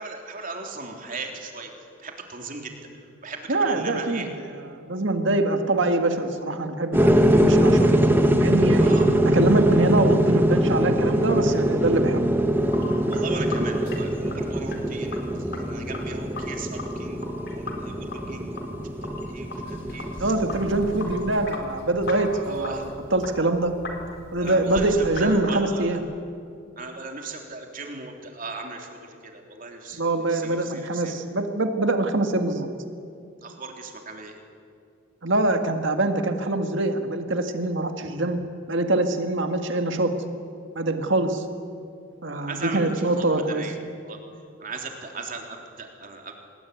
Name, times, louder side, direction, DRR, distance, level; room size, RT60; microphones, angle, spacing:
voice 1, 0.0-1.7 2.0-2.7 3.2-4.3 8.8-9.2 13.0-20.1 22.3-22.9 24.4-24.9 25.2-26.0 26.8-31.1 33.4-34.4 42.3-43.8 44.0-44.2 44.6-46.3, right 3 dB, 40° right, 2 dB, 3.5 m, -37 dB
voice 2, 3.5-7.1 7.4-8.0 8.4-9.0 9.2-12.3 20.2-23.7 24.3-26.0 29.9-32.7 35.2-38.4 38.7-40.2 40.8-41.4 42.2-43.7, right 2 dB, 55° right, 6 dB, 1.8 m, -24 dB
sound 1, 6.9-21.4, equal, 10° right, 1.5 m, -22 dB
Sink (filling or washing), 12.5-25.4, left 2 dB, 50° left, 4.1 m, -39 dB
27.0 x 20.5 x 9.5 m, 2.4 s
head